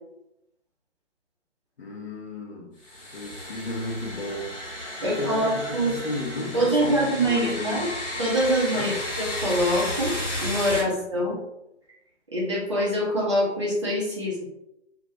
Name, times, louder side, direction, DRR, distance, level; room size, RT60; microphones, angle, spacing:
voice 1, 1.8-2.7 3.1-4.6 5.0-7.9 8.7-9.0 10.8-11.3, left 2 dB, 60° left, 0.5 m, -33 dB
sound 1, 2.8-10.8, left 1 dB, 80° left, 1.1 m, -33 dB
voice 2, 5.0-6.0 6.5-7.9 8.2-10.1 10.4-11.3 12.3-14.4, equal, 25° right, 0.5 m, -24 dB
2.2 x 2.1 x 2.7 m
figure-of-eight pair, 140°, 36 cm